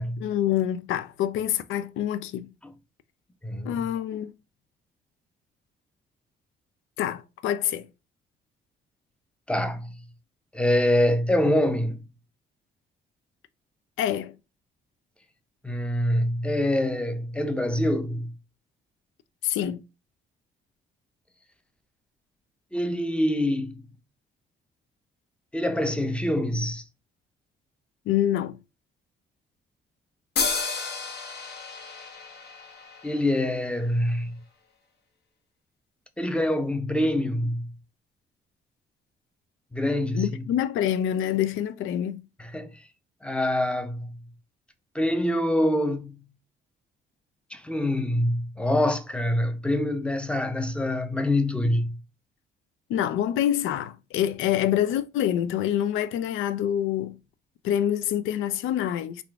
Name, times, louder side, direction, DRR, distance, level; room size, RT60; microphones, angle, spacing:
voice 1, 0.2-2.5 3.6-4.3 7.0-7.9 14.0-14.3 19.4-19.8 28.1-28.6 40.1-42.2 52.9-57.2 57.6-59.2, left 11 dB, 85° left, 0.4 m, -26 dB
voice 2, 3.4-3.8 9.5-9.9 10.5-12.0 15.6-18.3 22.7-23.9 25.5-26.8 33.0-34.4 36.2-37.7 39.7-40.4 42.4-42.7 43.2-44.1 44.9-46.2 47.5-51.9, left 1 dB, 5° left, 0.6 m, -25 dB
sound 1, 30.4-33.9, left 4 dB, 55° left, 1.0 m, -32 dB
3.6 x 2.4 x 3.4 m
cardioid pair, 90°, 20 cm